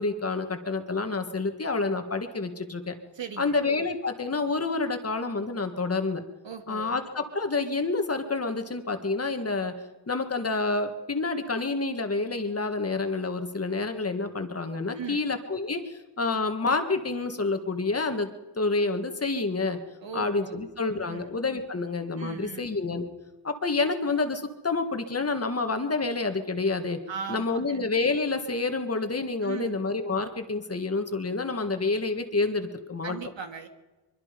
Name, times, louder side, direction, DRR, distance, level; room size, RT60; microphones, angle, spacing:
voice 1, 0.0-2.9 3.4-6.2 6.7-9.7 10.1-18.3 18.6-19.8 20.1-23.0 23.4-27.0 27.3-33.2, left 3 dB, 30° left, 7 dB, 1.7 m, -28 dB
voice 2, 3.1-3.7 6.4-7.0 14.9-15.3 20.0-20.6 21.0-21.4 22.2-22.6 27.1-27.8 29.4-29.8 33.0-33.7, right 6 dB, 75° right, 6 dB, 2.5 m, -39 dB
24.0 x 24.0 x 5.3 m, 1.1 s
wide cardioid pair, 165°, 45 cm